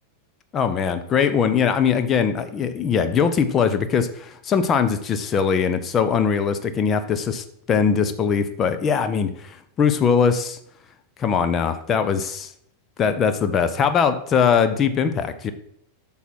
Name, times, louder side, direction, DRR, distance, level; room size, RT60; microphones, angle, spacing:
voice 1, 0.5-10.6 11.2-12.5 13.0-15.5, left 6 dB, 25° left, 10 dB, 0.7 m, -21 dB
8.2 x 5.6 x 4.5 m, 0.71 s
figure-of-eight pair, 90°, 0 cm